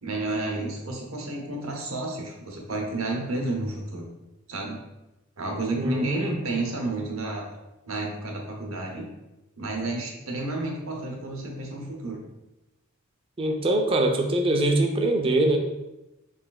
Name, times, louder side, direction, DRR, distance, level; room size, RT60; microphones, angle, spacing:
voice 1, 0.0-4.1 4.5-4.8 5.4-7.5 7.9-9.1 9.6-12.2, right 2 dB, 75° right, 0 dB, 0.9 m, -31 dB
voice 2, 5.8-6.3 13.4-15.6, right 1 dB, 25° right, 4 dB, 0.4 m, -23 dB
4.9 x 3.2 x 2.3 m, 0.97 s
head